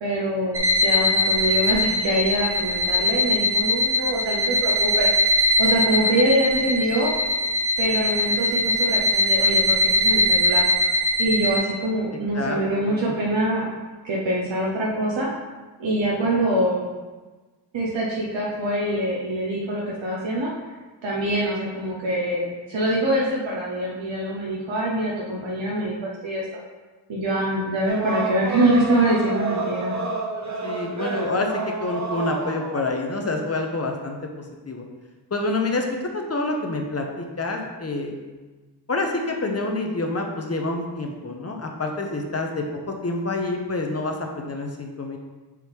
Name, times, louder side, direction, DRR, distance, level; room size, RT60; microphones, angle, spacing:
voice 1, 0.0-5.1 5.6-7.1 7.8-10.6 11.2-13.6 14.0-15.3 15.8-16.9 17.7-20.5 21.0-26.5 27.1-30.0, right 1 dB, 90° right, -4 dB, 1.0 m, -24 dB
sound 1, 0.5-11.6, left 1 dB, 60° right, 1.3 m, -21 dB
voice 2, 12.9-13.2 30.6-34.8 35.3-35.8 36.1-38.2 38.9-45.2, left 2 dB, 35° left, 3 dB, 0.8 m, -27 dB
sound 2, 27.9-32.9, right 3 dB, 40° right, 0.7 m, -29 dB
6.0 x 4.8 x 3.5 m, 1.3 s
wide cardioid pair, 105°, 44 cm